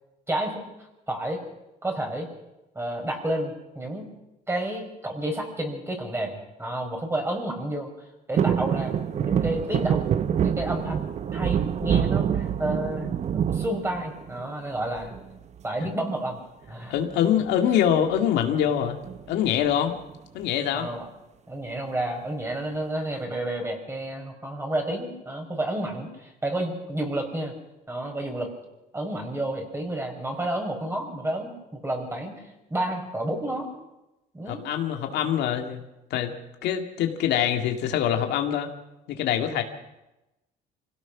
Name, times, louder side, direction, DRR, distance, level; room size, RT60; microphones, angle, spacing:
voice 1, 0.3-0.6 1.1-1.4 1.8-2.3 2.7-4.1 4.5-7.9 8.3-10.0 10.4-11.0 11.3-13.1 13.4-15.1 15.6-16.9 20.7-21.1 21.5-27.5 27.9-28.5 28.9-32.4 32.7-33.7 34.3-34.7, right 1 dB, 15° right, 3 dB, 4.9 m, -30 dB
sound 1, 8.3-14.5 15.0-15.6 16.8-17.3 17.5-17.6 17.9-18.2 19.0-20.0 20.4-20.5, right 8 dB, 40° right, 0.8 m, -26 dB
voice 2, 16.9-19.0 19.3-19.9 20.3-20.9 34.5-35.8 36.1-36.3 36.6-38.7 39.1-39.6, left 9 dB, 85° left, 5 dB, 2.1 m, -24 dB
25.5 x 17.0 x 6.0 m, 0.97 s
cardioid pair, 110°, 17 cm